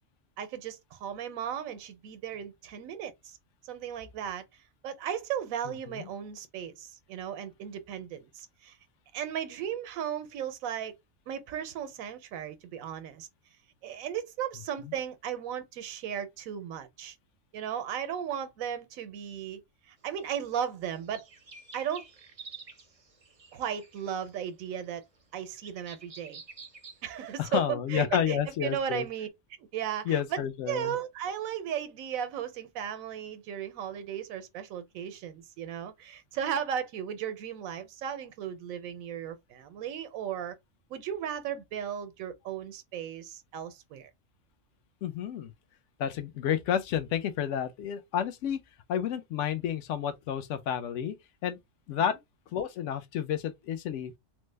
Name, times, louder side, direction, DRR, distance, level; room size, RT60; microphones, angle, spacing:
voice 1, 0.4-3.4 3.6-4.4 4.8-8.8 9.1-11.0 11.3-13.3 13.8-17.2 17.5-19.6 19.9-21.2 21.7-22.0 23.5-25.0 25.3-26.4 27.0-29.3 29.7-30.4 30.7-40.5 40.9-44.1, right 9 dB, 85° right, 1.0 m, -36 dB
sound 1, 20.0-20.1 20.4-27.4, right 4 dB, 50° right, 0.4 m, -50 dB
voice 2, 27.4-29.1 30.0-30.9 45.0-45.5 46.0-48.6 48.9-51.1 51.4-51.6 51.9-52.2 52.5-54.2, left 9 dB, 70° left, 0.9 m, -30 dB
3.2 x 2.0 x 3.2 m
omnidirectional pair, 1.4 m